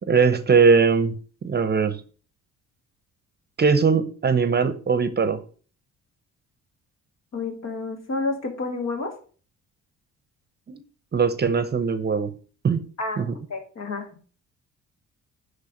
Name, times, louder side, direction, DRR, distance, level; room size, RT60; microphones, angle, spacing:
voice 1, 0.1-1.1 1.4-2.0 3.6-5.4 10.7-10.8 11.1-12.3 12.6-12.8 13.2-13.4, right 5 dB, 35° right, 0.7 m, -20 dB
voice 2, 7.3-9.1 13.0-13.2 13.5-14.1, left 3 dB, 60° left, 1.8 m, -29 dB
10.0 x 3.4 x 5.1 m
cardioid pair, 90°, 30 cm